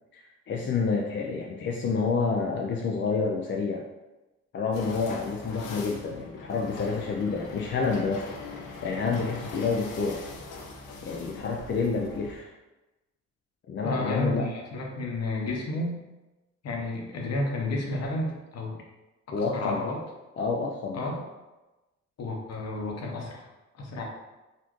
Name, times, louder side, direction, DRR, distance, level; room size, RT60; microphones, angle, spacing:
voice 1, 0.1-3.9 4.5-8.3 8.8-10.2 11.0-12.5 13.7-14.5 19.3-19.8 20.4-21.0, left 4 dB, 40° left, -1 dB, 0.4 m, -28 dB
sound 1, 4.7-12.3, left 3 dB, 90° left, 0.7 m, -41 dB
voice 2, 13.8-15.9 16.6-18.8 19.4-20.0 20.9-21.2 22.2-23.5 23.7-24.0, left 2 dB, 60° left, 0 dB, 0.9 m, -31 dB
4.1 x 2.5 x 3.0 m, 1.1 s
cardioid pair, 90°, 30 cm